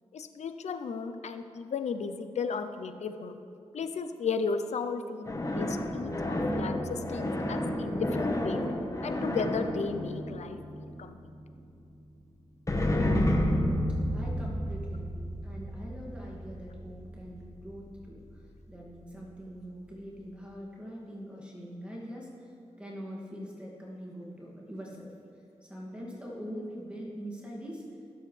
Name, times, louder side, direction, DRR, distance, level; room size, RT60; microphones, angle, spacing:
voice 1, 0.1-3.4 3.7-8.6 9.0-11.2, left 5 dB, 75° left, 8 dB, 0.7 m, -35 dB
sound 1, 5.3-11.2 12.7-18.0, left 1 dB, 30° left, 1.3 m, -31 dB
voice 2, 14.1-25.1 25.6-27.8, equal, 10° right, -5 dB, 2.4 m, -43 dB
19.5 x 7.9 x 3.4 m, 2.6 s
cardioid pair, 55°, 12 cm